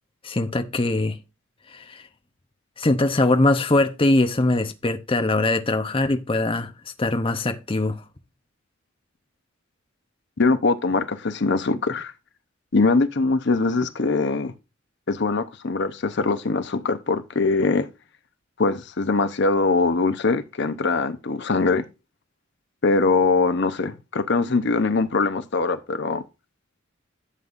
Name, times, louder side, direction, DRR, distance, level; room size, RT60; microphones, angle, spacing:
voice 1, 0.2-1.2 1.7-2.1 2.8-6.7 7.0-8.0, left 2 dB, 25° left, 0.8 m, -22 dB
voice 2, 10.4-12.1 12.7-14.5 15.1-17.9 18.6-21.9 22.8-26.2, left 3 dB, 60° left, 0.8 m, -22 dB
11.5 x 7.2 x 2.5 m
head